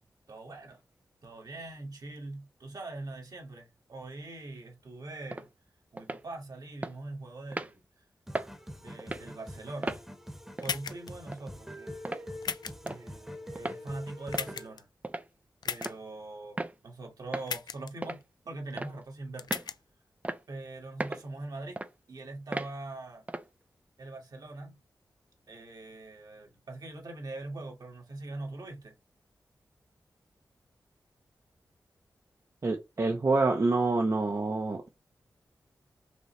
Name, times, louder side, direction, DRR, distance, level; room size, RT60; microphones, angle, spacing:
voice 1, 0.3-0.8 1.2-5.5 5.9-7.8 8.8-10.0 10.6-12.0 12.8-14.9 15.6-19.7 20.5-21.8 22.1-23.2 24.0-24.8 25.5-29.0, right 2 dB, 65° right, 1.9 m, -42 dB
sound 1, 5.3-5.5 6.0-6.2 6.8-7.0 7.5-7.7 8.3-8.5 9.0-9.3 9.8-10.0 10.6-10.8 11.3-11.4 12.0-12.3 12.9-13.0 13.6-13.8 14.3-14.6 15.0-15.3 15.8-16.0 16.6-16.8 17.3-17.5 18.0-18.2 18.8-19.0 19.5-19.7 20.2-20.4 21.0-21.3 21.8-21.9 22.5-22.7 23.3-23.5, right 2 dB, 20° right, 0.5 m, -36 dB
sound 2, 8.3-14.7, equal, 5° right, 1.1 m, -44 dB
sound 3, 10.6-11.1 12.4-12.9 14.3-14.8 15.6-15.9 17.5-17.9 19.4-19.8, left 6 dB, 80° left, 0.4 m, -35 dB
voice 2, 32.6-34.9, right 3 dB, 45° right, 0.9 m, -27 dB
5.1 x 3.2 x 3.2 m
wide cardioid pair, 70°, 7 cm